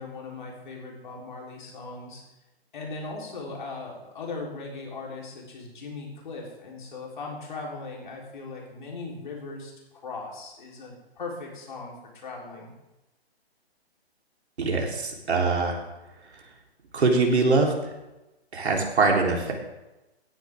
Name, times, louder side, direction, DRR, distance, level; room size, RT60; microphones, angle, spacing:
voice 1, 0.0-2.2 2.7-12.7, left 3 dB, 50° left, -2 dB, 3.9 m, -38 dB
voice 2, 14.6-15.8 16.9-17.7 18.5-19.5, right 3 dB, 85° right, 0 dB, 3.7 m, -23 dB
17.0 x 10.5 x 3.6 m, 1.0 s
hypercardioid pair, 180°, 32 cm